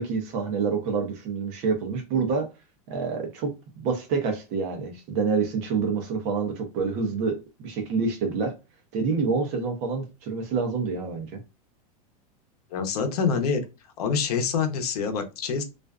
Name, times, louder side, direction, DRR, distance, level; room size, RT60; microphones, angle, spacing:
voice 1, 0.0-2.5 2.9-8.5 8.9-11.4, right 5 dB, 40° right, 0.7 m, -27 dB
voice 2, 12.7-13.6 14.0-15.6, left 6 dB, 85° left, 0.7 m, -26 dB
2.5 x 2.2 x 2.3 m
supercardioid pair, 165°, 19 cm